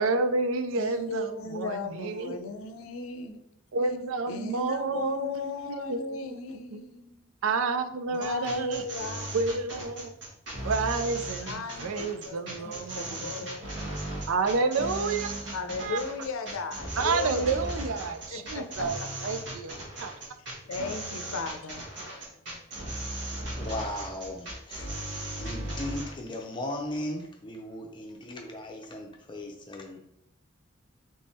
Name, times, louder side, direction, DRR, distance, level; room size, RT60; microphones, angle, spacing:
voice 1, 0.0-2.4 3.7-5.4 5.7-6.8 7.4-8.8 9.3-10.1 10.6-13.5 13.8-13.9 14.3-16.0 17.0-20.1, right 4 dB, 80° right, 0.4 m, -30 dB
voice 2, 0.8-3.4 4.3-7.3 8.1-9.6 11.4-13.7 15.5-17.6 18.3-19.1 20.7-21.8, left 3 dB, 85° left, 0.5 m, -36 dB
sound 1, 8.1-26.1, right 1 dB, 55° right, 1.4 m, -37 dB
voice 3, 23.1-30.0, left 1 dB, 20° left, 0.6 m, -37 dB
3.4 x 3.1 x 4.2 m
head